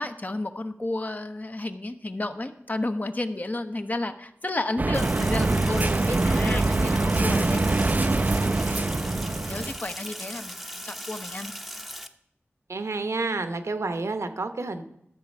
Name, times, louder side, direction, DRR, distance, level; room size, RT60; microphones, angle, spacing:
voice 1, 0.0-11.5, left 2 dB, 35° left, 8 dB, 0.9 m, -32 dB
sound 1, 4.8-9.8, right 2 dB, 35° right, 0.4 m, -24 dB
Sink (filling or washing), 4.9-12.1, equal, ahead, 0.8 m, -38 dB
voice 2, 12.7-14.8, right 3 dB, 80° right, 8 dB, 1.0 m, -29 dB
13.0 x 7.1 x 5.3 m, 0.79 s
wide cardioid pair, 75°, 5 cm